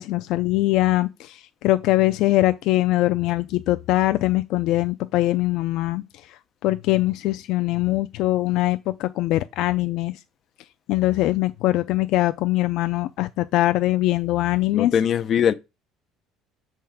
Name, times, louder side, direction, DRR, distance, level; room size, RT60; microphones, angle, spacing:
voice 1, 0.0-6.0 6.3-10.1 10.9-14.9, left 17 dB, 70° left, 0.4 m, -22 dB
voice 2, 14.7-15.5, left 8 dB, 40° left, 0.7 m, -21 dB
7.5 x 3.6 x 5.8 m
cardioid pair, 140°, 0 cm